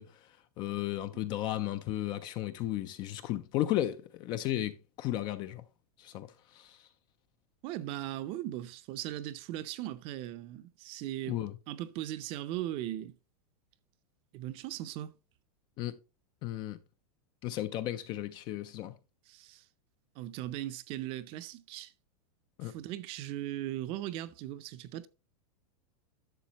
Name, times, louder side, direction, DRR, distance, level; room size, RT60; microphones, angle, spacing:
voice 1, 0.0-5.6 6.0-6.9 11.3-11.6 15.8-16.0 16.4-16.8 17.4-18.9 22.6-22.8, left 14 dB, 25° left, 0.3 m, -35 dB
voice 2, 7.6-11.4 11.7-13.1 14.3-15.1 19.3-19.6 20.2-21.9 22.6-25.1, right 13 dB, 30° right, 0.5 m, -38 dB
11.5 x 6.7 x 2.9 m
supercardioid pair, 165°, 19 cm